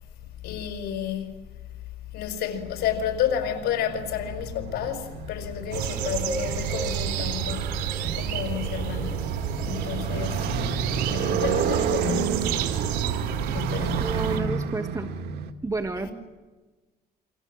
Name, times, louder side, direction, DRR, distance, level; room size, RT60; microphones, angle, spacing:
voice 1, 0.4-1.3 2.1-7.7 8.1-10.5 11.1-12.7 13.5-14.2 16.0-16.1, left 9 dB, 75° left, 5.6 m, -31 dB
Motorcycle, 3.0-15.5, right 7 dB, 75° right, 2.1 m, -31 dB
sound 1, 5.7-14.4, right 8 dB, 90° right, 4.0 m, -30 dB
voice 2, 13.8-15.1 15.6-16.1, right 3 dB, 20° right, 1.7 m, -30 dB
28.0 x 26.0 x 7.5 m
cardioid pair, 110°, 17 cm